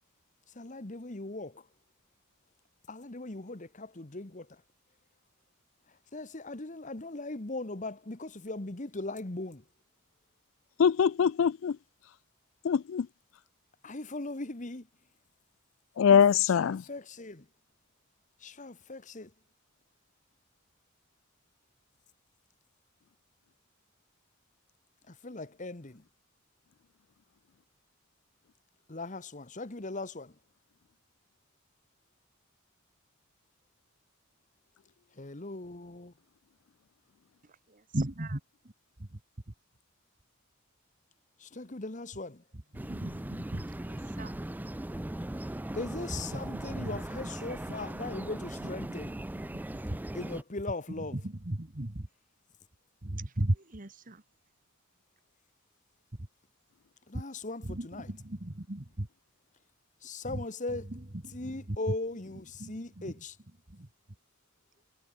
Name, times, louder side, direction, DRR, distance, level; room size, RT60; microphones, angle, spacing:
voice 1, 0.5-1.6 2.9-4.5 6.1-9.6 13.8-14.9 16.1-17.4 18.4-19.3 25.1-26.0 28.9-30.3 35.2-36.1 41.4-42.4 45.7-49.2 50.1-51.2 57.1-58.1 60.0-60.9 61.3-63.3, left 2 dB, 35° left, 1.3 m, -39 dB
voice 2, 10.8-11.7 12.6-13.1 16.0-16.8, left 7 dB, 65° left, 0.4 m, -23 dB
voice 3, 37.7-38.4 39.0-39.2 42.7-44.3 46.3-47.0 47.7-47.8 48.6-48.7 49.5-50.0 51.0-52.1 53.0-54.2 57.6-59.1 60.3-60.4 60.9-61.8 62.6-63.1 63.7-63.9, right 1 dB, 40° right, 1.6 m, -36 dB
sound 1, 42.7-50.4, right 1 dB, 10° right, 0.4 m, -39 dB
head